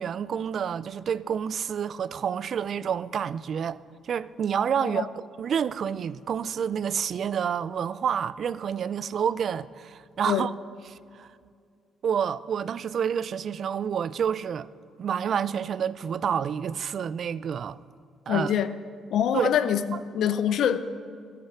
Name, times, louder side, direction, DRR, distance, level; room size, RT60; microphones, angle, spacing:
voice 1, 0.0-3.8 4.0-5.1 5.4-10.5 10.9-11.3 12.0-14.7 15.0-17.8 18.3-18.5 19.3-19.5, right 8 dB, 60° right, 0.4 m, -28 dB
voice 2, 18.3-18.8 19.1-20.8, left 9 dB, 75° left, 0.6 m, -25 dB
14.0 x 8.6 x 5.8 m
cardioid pair, 90°, 0 cm